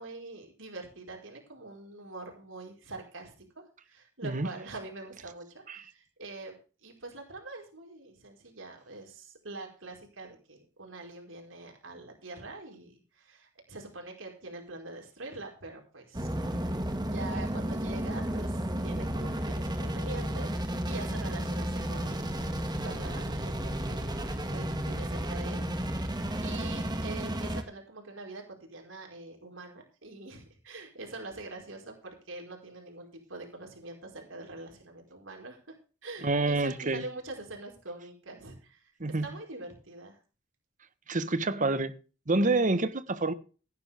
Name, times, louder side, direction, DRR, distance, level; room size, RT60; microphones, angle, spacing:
voice 1, 0.0-6.5 6.8-16.3 17.0-22.4 22.8-35.7 36.0-40.2, right 2 dB, 75° right, 5.0 m, -44 dB
sound 1, 16.1-27.6, right 1 dB, 20° right, 2.0 m, -32 dB
voice 2, 36.2-37.0 39.0-39.3 41.1-41.9 42.3-43.3, right 2 dB, 40° right, 1.3 m, -27 dB
16.5 x 11.0 x 3.6 m
head